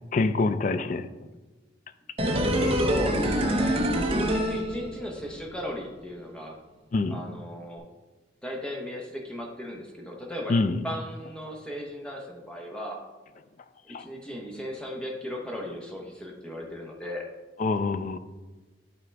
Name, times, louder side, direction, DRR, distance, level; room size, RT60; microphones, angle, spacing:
voice 1, 0.1-1.1 2.6-2.7 6.9-7.2 10.5-10.8 13.9-14.0 17.6-18.2, left 3 dB, 40° left, 11 dB, 0.3 m, -25 dB
sound 1, 2.2-5.3 5.6-5.7, equal, 30° right, 0.8 m, -25 dB
voice 2, 2.6-6.6 7.1-7.9 8.4-13.0 13.8-17.3, equal, 5° left, -1 dB, 1.0 m, -37 dB
11.5 x 3.9 x 3.4 m, 1.2 s
head